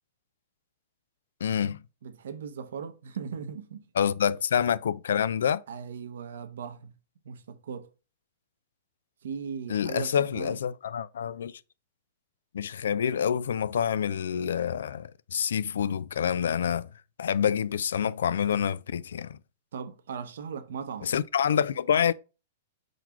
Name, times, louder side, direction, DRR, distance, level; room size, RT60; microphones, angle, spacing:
voice 1, 1.4-1.8 4.0-5.6 9.7-11.6 12.5-16.9 17.2-19.4 21.0-22.1, left 8 dB, 85° left, 0.3 m, -27 dB
voice 2, 2.0-3.8 5.7-6.9 7.2-7.9 9.2-10.6 19.7-21.1, right 6 dB, 80° right, 0.8 m, -38 dB
4.7 x 3.9 x 2.9 m
hypercardioid pair, 140°, 0 cm